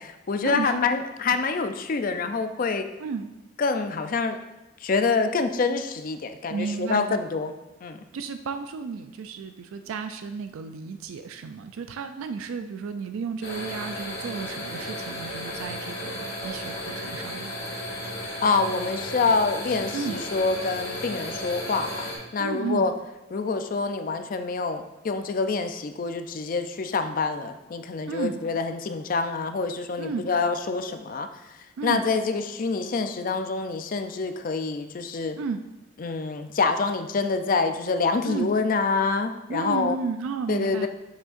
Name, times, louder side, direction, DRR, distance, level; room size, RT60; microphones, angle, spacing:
voice 1, 0.0-2.9 3.6-4.4 4.8-7.5 7.8-8.0 18.4-22.9 23.3-35.4 36.0-40.0 40.5-40.9, left 4 dB, 40° left, 8 dB, 0.4 m, -26 dB
voice 2, 3.0-3.3 6.5-7.2 8.1-17.5 19.9-20.2 22.4-22.9 28.1-28.4 30.0-30.3 31.8-32.0 35.4-35.6 38.2-38.6 39.5-40.9, right 5 dB, 80° right, 8 dB, 0.3 m, -33 dB
sound 1, 13.4-22.2, left 1 dB, 60° left, 2.4 m, -34 dB
7.2 x 6.2 x 2.5 m, 1.0 s
head